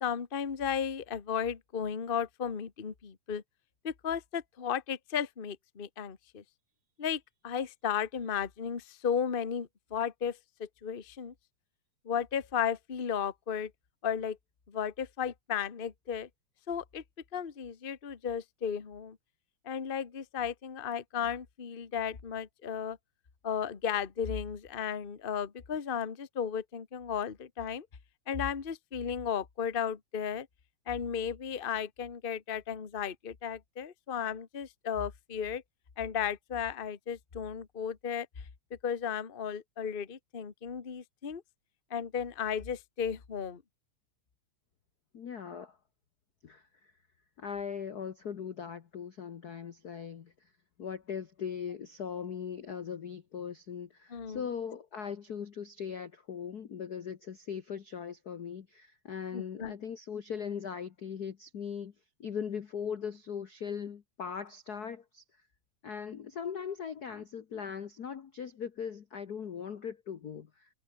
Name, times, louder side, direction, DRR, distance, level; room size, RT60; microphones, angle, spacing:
voice 1, 0.0-3.4 3.8-6.4 7.0-11.3 12.0-13.7 14.0-14.4 14.7-16.3 16.7-17.0 17.3-19.2 19.6-23.0 23.4-27.9 28.3-30.5 30.9-35.6 36.0-38.3 38.8-41.4 41.9-43.6 54.1-54.5 59.3-59.7, left 8 dB, 30° left, 0.9 m, -34 dB
voice 2, 45.1-45.8 46.4-46.9 47.4-50.3 50.8-61.9 62.2-65.2 65.8-70.7, left 7 dB, 55° left, 1.1 m, -39 dB
omnidirectional pair, 3.3 m